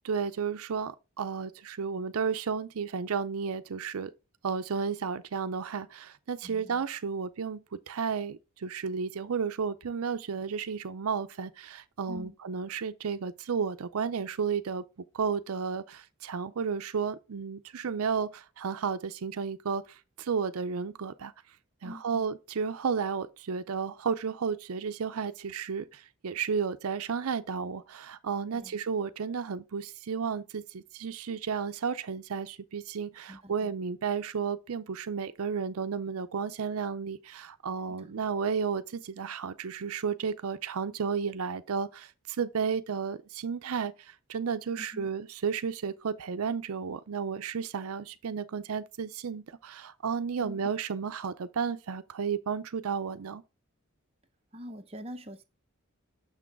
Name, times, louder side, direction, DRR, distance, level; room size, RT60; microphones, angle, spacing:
voice 1, 0.0-4.1 4.4-14.8 15.1-21.3 21.8-53.4, right 6 dB, 80° right, 0.5 m, -33 dB
voice 2, 6.4-6.8 12.1-12.4 21.8-22.3 28.5-28.7 33.3-33.7 37.9-38.1 44.8-45.1 50.4-50.6 54.5-55.4, equal, 25° right, 0.7 m, -44 dB
6.7 x 6.1 x 3.4 m
head